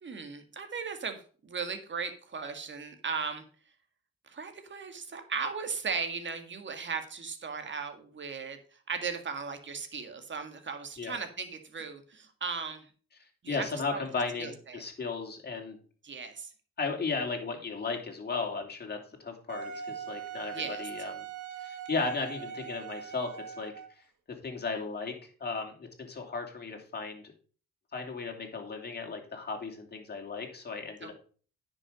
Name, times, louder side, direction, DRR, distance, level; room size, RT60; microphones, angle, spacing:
voice 1, 0.0-3.4 4.3-12.9 13.4-14.0 14.4-14.8 16.0-16.5 20.5-20.8 31.0-31.1, right 5 dB, 40° right, 7 dB, 1.9 m, -37 dB
voice 2, 13.5-15.8 16.8-21.3 21.6-23.7 24.4-27.3 27.9-31.1, left 4 dB, 35° left, 2 dB, 3.0 m, -35 dB
Wind instrument woodwind instrument, 19.5-24.0, right 7 dB, 80° right, 1.6 m, -41 dB
9.9 x 6.3 x 5.2 m, 0.40 s
cardioid pair, 90°, 30 cm